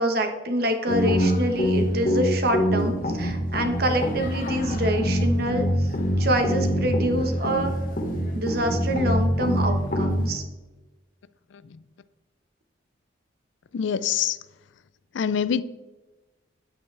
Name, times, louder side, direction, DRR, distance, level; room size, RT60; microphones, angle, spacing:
voice 1, 0.0-5.9 6.2-7.7 8.3-10.4, right 1 dB, 55° right, 1.2 m, -26 dB
sound 1, 0.9-10.4, equal, 45° left, 1.2 m, -25 dB
voice 2, 13.7-14.4 15.1-15.6, left 8 dB, 80° left, 0.4 m, -24 dB
9.5 x 8.7 x 3.4 m
head